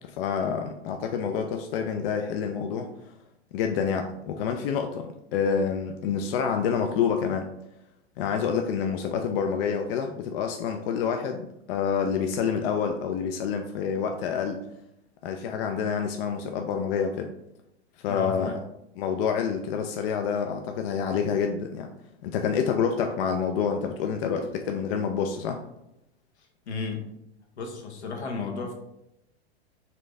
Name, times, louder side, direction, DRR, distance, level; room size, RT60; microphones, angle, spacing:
voice 1, 0.1-2.9 3.5-7.5 8.2-14.6 15.2-17.3 18.0-18.6 19.0-21.9 22.2-25.6, left 6 dB, 60° left, 5 dB, 0.5 m, -28 dB
voice 2, 18.1-18.6 26.7-27.1 27.6-28.7, left 4 dB, 85° left, 2 dB, 1.0 m, -33 dB
4.3 x 2.6 x 3.2 m, 0.83 s
hypercardioid pair, 125°, 33 cm